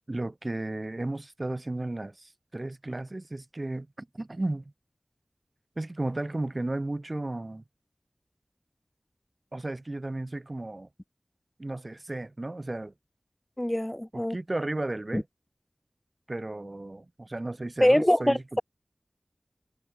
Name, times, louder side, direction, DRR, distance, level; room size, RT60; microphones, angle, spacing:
voice 1, 0.1-4.7 5.8-7.6 9.5-10.9 11.6-12.9 14.1-15.3 16.3-18.6, right 2 dB, 45° right, 0.9 m, -34 dB
voice 2, 13.6-14.4 15.1-15.2 17.8-18.6, left 1 dB, 15° left, 0.3 m, -23 dB
wide cardioid pair, 45°, 0 cm